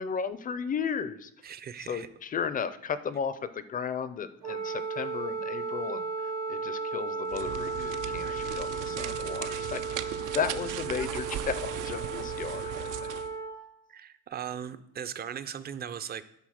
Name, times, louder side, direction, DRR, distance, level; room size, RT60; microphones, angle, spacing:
voice 1, 0.0-1.3 1.8-10.0 10.3-13.1, left 7 dB, 30° left, 14 dB, 0.4 m, -34 dB
voice 2, 1.4-2.1 13.9-16.2, right 8 dB, 30° right, 13 dB, 0.4 m, -38 dB
Wind instrument woodwind instrument, 4.4-13.6, right 4 dB, 65° right, 1.2 m, -35 dB
sound 1, 7.3-13.3, right 11 dB, 85° right, 0.6 m, -38 dB
11.0 x 4.2 x 6.3 m, 0.78 s
cardioid pair, 175°, 30 cm